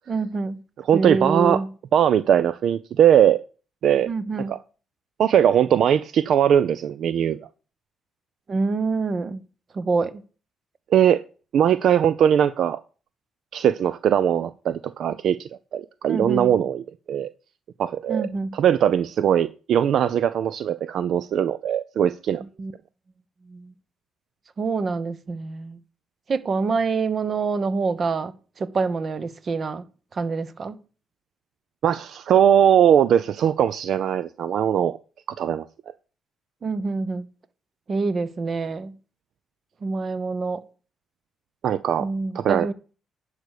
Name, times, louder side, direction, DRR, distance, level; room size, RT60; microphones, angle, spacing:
voice 1, 0.1-0.6 0.9-1.7 4.1-4.6 8.5-9.4 9.7-10.1 16.1-16.5 18.1-18.6 22.6-22.7 23.5-23.7 24.6-25.8 26.3-29.8 30.1-30.7 36.6-37.3 37.9-39.0 39.8-40.6 42.0-42.7, right 4 dB, 45° right, 0.9 m, -26 dB
voice 2, 0.9-1.6 1.9-3.4 3.8-4.1 4.5-4.6 5.2-7.4 10.9-11.2 11.5-12.8 13.5-17.3 17.8-22.4 31.8-35.0 35.4-35.6 41.6-42.1 42.3-42.7, right 9 dB, 70° right, 0.4 m, -20 dB
10.5 x 4.9 x 6.6 m
cardioid pair, 90°, 0 cm